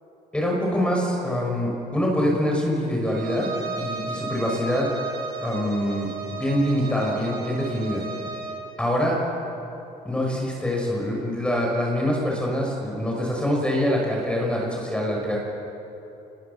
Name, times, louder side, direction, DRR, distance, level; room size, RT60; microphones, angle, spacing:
voice 1, 0.3-4.9 5.4-8.0 8.8-9.2 10.0-15.4, equal, 5° left, -1 dB, 5.7 m, -25 dB
Bowed string instrument, 3.0-8.6, right 4 dB, 65° right, 7.1 m, -34 dB
28.5 x 20.0 x 6.8 m, 3.0 s
cardioid pair, 110°, 17 cm